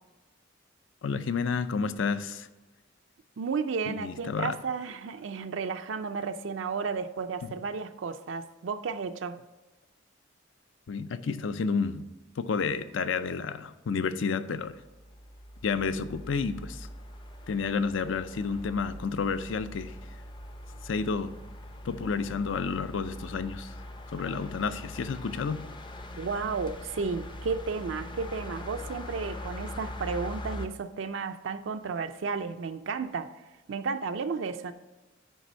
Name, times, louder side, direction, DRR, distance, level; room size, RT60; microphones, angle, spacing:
voice 1, 1.0-2.5 3.9-4.5 10.9-12.1 12.4-14.8 15.6-16.9 17.5-20.0 20.8-21.3 21.8-23.7 24.1-25.6, left 5 dB, 70° left, 12 dB, 0.5 m, -30 dB
voice 2, 3.4-9.4 24.2-24.4 26.2-34.7, right 5 dB, 65° right, 8 dB, 0.4 m, -33 dB
sound 1, 14.6-30.7, left 1 dB, 25° left, 0.5 m, -42 dB
9.3 x 3.4 x 6.2 m, 1.1 s
head